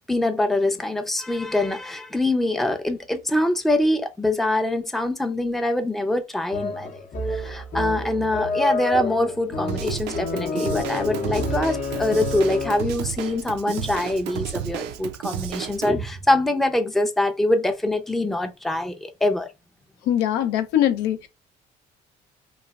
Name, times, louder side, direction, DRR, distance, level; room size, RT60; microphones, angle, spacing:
voice 1, 0.1-7.0 7.3-19.5, left 1 dB, ahead, 0.4 m, -24 dB
Dapper Duck's Jingle, 6.5-13.0, left 3 dB, 50° left, 0.6 m, -29 dB
Drum kit / Drum, 9.7-15.9, right 10 dB, 85° right, 0.4 m, -32 dB
voice 2, 20.1-21.3, left 11 dB, 90° left, 0.5 m, -22 dB
3.1 x 2.3 x 2.3 m
cardioid pair, 110°, 17 cm